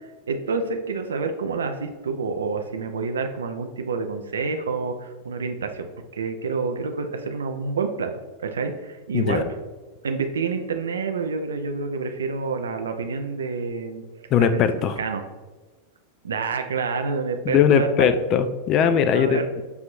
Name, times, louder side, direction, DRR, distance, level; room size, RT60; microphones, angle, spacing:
voice 1, 0.3-5.9 6.1-9.4 10.0-14.0 14.4-14.6 15.0-15.2 16.2-18.1 19.1-19.5, right 4 dB, 70° right, 6 dB, 0.4 m, -28 dB
voice 2, 14.3-15.0 17.5-19.6, left 7 dB, 35° left, 11 dB, 0.3 m, -20 dB
6.8 x 2.6 x 2.5 m, 1.3 s
figure-of-eight pair, 90°, 0 cm